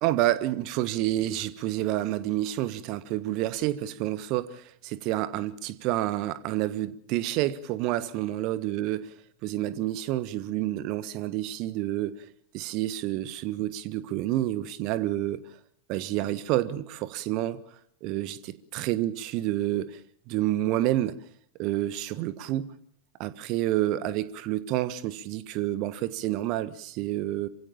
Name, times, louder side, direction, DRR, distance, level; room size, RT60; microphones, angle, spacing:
voice 1, 0.0-9.1 9.4-12.2 12.5-15.4 15.9-17.6 18.0-18.4 18.7-20.0 20.3-21.2 21.6-22.7 23.2-27.5, right 14 dB, 40° right, 1.4 m, -29 dB
27.0 x 16.0 x 7.2 m
figure-of-eight pair, 90°, 0 cm